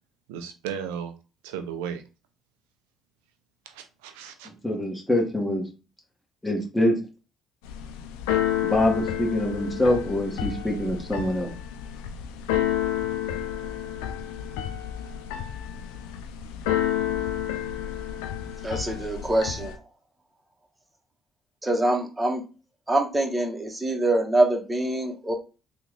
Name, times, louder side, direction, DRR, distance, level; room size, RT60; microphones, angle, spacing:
voice 1, 0.3-1.1 1.4-2.0 3.7-4.5, right 8 dB, 90° right, 0.5 m, -35 dB
voice 2, 4.4-5.6 6.4-7.0 8.6-11.5, left 1 dB, 5° left, 1.5 m, -25 dB
Keyboard (musical), 7.6-19.7, left 11 dB, 85° left, 0.4 m, -30 dB
voice 3, 18.6-19.7 21.6-22.4 22.9-25.3, right 1 dB, 20° right, 1.1 m, -24 dB
3.6 x 2.4 x 3.2 m
hypercardioid pair, 60°, 0 cm